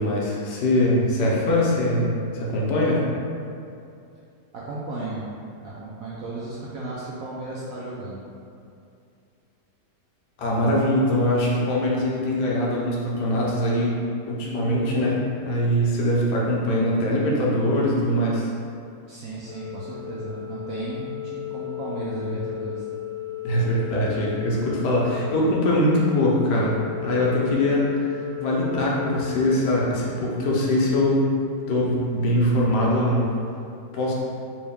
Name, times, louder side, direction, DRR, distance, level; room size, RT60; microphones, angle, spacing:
voice 1, 0.0-3.0 10.4-14.0 14.3-18.5 23.4-26.7 27.0-31.3 31.7-33.4 33.9-34.1, left 1 dB, 75° left, -4 dB, 1.2 m, -22 dB
voice 2, 4.5-5.3 5.6-8.2 19.1-22.8 27.1-27.8 28.4-28.7, right 2 dB, 70° right, -6 dB, 0.8 m, -35 dB
Organ, 19.4-30.5, left 14 dB, 55° left, 0.4 m, -35 dB
3.1 x 3.0 x 3.4 m, 2.5 s
omnidirectional pair, 1.9 m